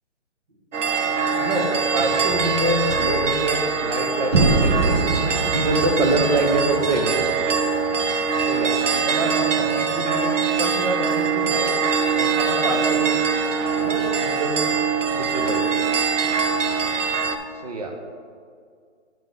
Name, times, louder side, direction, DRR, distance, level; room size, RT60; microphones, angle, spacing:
sound 1, 0.7-17.4, right 5 dB, 85° right, 0.8 m, -23 dB
voice 1, 1.4-7.3 8.4-11.8 12.1-13.2 13.8-14.7 15.1-15.7 17.6-18.0, right 2 dB, 35° right, 3 dB, 0.8 m, -26 dB
sound 2, 2.0-4.5, left 4 dB, 55° left, 0.9 m, -38 dB
sound 3, 4.3-8.3, right 3 dB, 60° right, 1.0 m, -24 dB
9.0 x 5.1 x 3.7 m, 2.1 s
hypercardioid pair, 165°, 36 cm